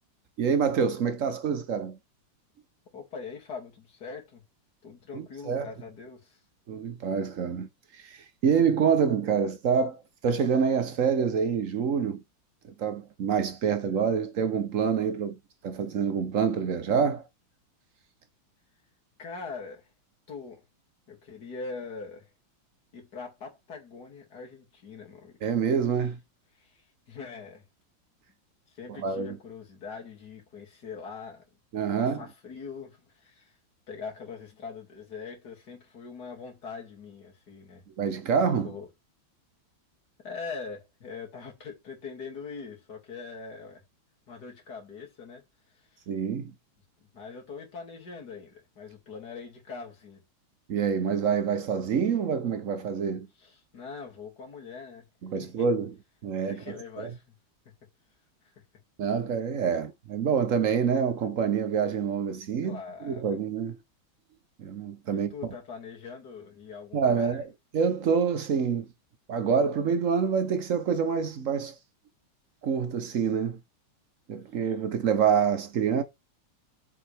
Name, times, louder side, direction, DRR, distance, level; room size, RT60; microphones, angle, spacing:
voice 1, 0.4-2.0 5.1-5.7 6.7-12.2 12.8-15.4 15.6-17.2 25.4-26.2 29.0-29.4 31.7-32.2 38.0-38.7 46.1-46.5 50.7-53.3 55.2-55.9 56.2-57.1 59.0-63.8 64.6-65.3 66.9-67.5 67.7-68.9 69.3-71.8 72.6-73.6 74.3-76.0, right 6 dB, 55° right, 0.9 m, -26 dB
voice 2, 2.9-4.4 4.8-6.4 19.2-19.9 20.3-20.6 21.1-22.3 22.9-25.4 26.5-27.6 28.7-31.4 32.0-33.6 33.9-37.8 38.6-38.9 40.2-43.8 44.3-45.4 45.7-46.0 47.1-50.2 53.4-55.1 55.4-55.7 56.5-57.2 62.6-63.4 65.1-67.4, left 5 dB, 55° left, 2.9 m, -42 dB
7.8 x 6.0 x 3.4 m
omnidirectional pair, 2.1 m